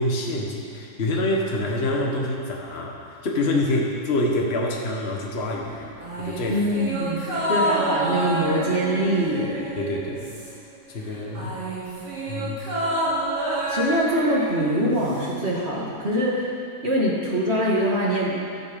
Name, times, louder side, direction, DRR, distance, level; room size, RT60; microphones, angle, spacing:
voice 1, 0.0-5.9 6.2-6.7 7.3-7.5 9.8-10.3 10.9-11.5 12.3-12.6, left 1 dB, 40° left, -1 dB, 1.7 m, -26 dB
sound 1, 6.0-10.8 11.0-15.3 15.6-15.7, right 1 dB, 85° right, 4.1 m, -28 dB
voice 2, 6.5-9.5 13.7-16.5 16.8-18.4, equal, 40° right, -4 dB, 2.4 m, -23 dB
16.0 x 11.0 x 5.4 m, 2.4 s
omnidirectional pair, 1.8 m